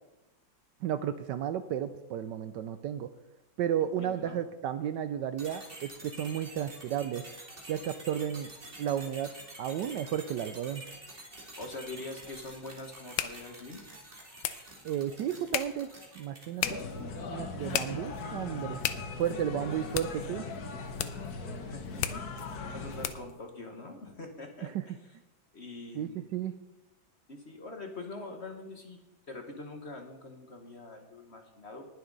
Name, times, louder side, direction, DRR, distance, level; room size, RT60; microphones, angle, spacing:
voice 1, 0.8-3.1 3.6-7.2 7.7-8.5 8.8-9.3 9.6-10.8 14.8-15.9 16.2-16.8 17.3-18.8 19.2-20.5 24.6-24.9 25.9-26.6, right 10 dB, 75° right, 11 dB, 1.1 m, -33 dB
voice 2, 4.0-4.4 11.6-13.8 21.7-22.2 22.7-25.1 25.5-26.2 27.3-31.9, left 2 dB, 40° left, 4 dB, 1.3 m, -44 dB
sound 1, 5.4-17.0, right 2 dB, 25° right, 2.5 m, -48 dB
sound 2, 12.1-23.4, left 11 dB, 85° left, 1.5 m, -39 dB
sound 3, 16.6-23.1, left 4 dB, 55° left, 1.5 m, -39 dB
20.0 x 7.2 x 3.9 m, 0.96 s
omnidirectional pair, 2.2 m